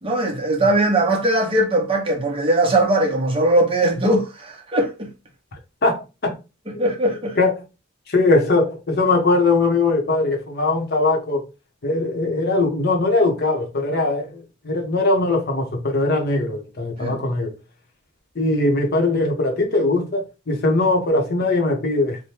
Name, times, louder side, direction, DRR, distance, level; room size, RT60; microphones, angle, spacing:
voice 1, 0.0-5.1 6.8-7.4 17.0-17.2, right 1 dB, 25° right, 0.8 m, -20 dB
voice 2, 5.8-6.4 6.7-6.9 7.4-7.6 8.1-11.4 11.8-17.5 18.3-22.2, left 2 dB, 50° left, 0.8 m, -20 dB
2.8 x 2.2 x 3.2 m
head